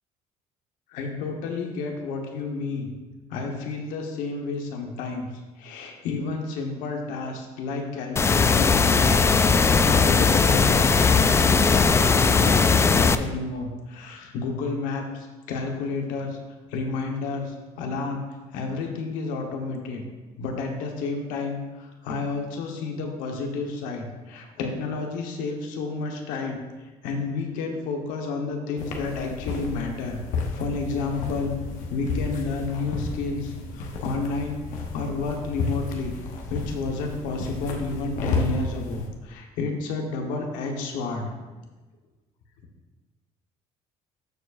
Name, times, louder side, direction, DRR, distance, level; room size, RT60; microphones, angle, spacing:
voice 1, 0.9-2.9 3.3-5.3 5.6-16.4 16.7-18.2 18.5-20.0 20.4-26.6 27.0-30.2 30.5-31.5 31.9-34.6 34.9-36.1 36.5-41.3, left 4 dB, 90° left, 2 dB, 1.2 m, -31 dB
sound 1, 8.2-13.2, left 5 dB, 20° left, 0.3 m, -19 dB
sound 2, 28.8-39.1, left 3 dB, 70° left, 1.0 m, -32 dB
13.5 x 4.6 x 2.5 m, 1.2 s
cardioid pair, 105°, 14 cm